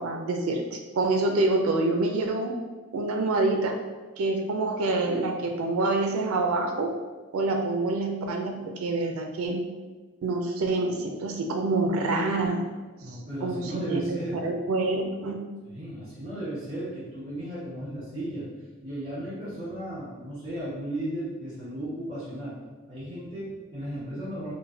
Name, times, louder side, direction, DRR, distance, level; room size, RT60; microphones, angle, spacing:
voice 1, 0.0-2.5 2.9-3.8 4.2-6.9 7.3-9.6 10.2-12.7 13.1-15.4, right 2 dB, 90° right, 4 dB, 0.4 m, -27 dB
voice 2, 13.0-14.4 15.6-18.4 18.8-22.6 22.9-24.5, right 1 dB, 30° right, -15 dB, 1.5 m, -35 dB
3.8 x 2.1 x 2.6 m, 1.3 s
head